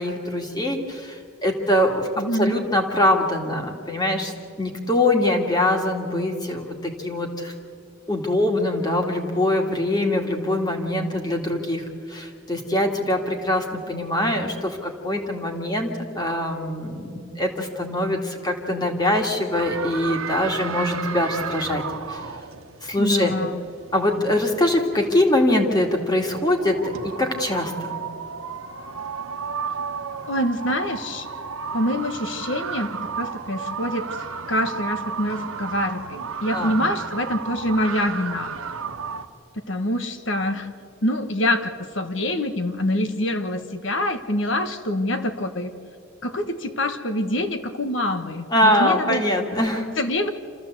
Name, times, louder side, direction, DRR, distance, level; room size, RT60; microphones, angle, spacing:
voice 1, 0.0-4.3 4.6-7.5 8.1-21.8 22.1-22.2 22.8-23.3 23.9-28.0 36.5-36.7 48.5-49.9, left 1 dB, 20° left, 2 dB, 2.2 m, -23 dB
voice 2, 2.2-2.7 23.0-23.7 30.3-31.3 31.7-32.9 33.2-34.1 34.5-38.6 39.7-40.7 41.0-45.7 46.2-49.2 50.0-50.3, left 1 dB, 60° left, 9 dB, 1.4 m, -25 dB
sound 1, 19.5-39.3, right 5 dB, 80° right, 1.2 m, -33 dB
27.5 x 14.5 x 8.1 m, 2.5 s
head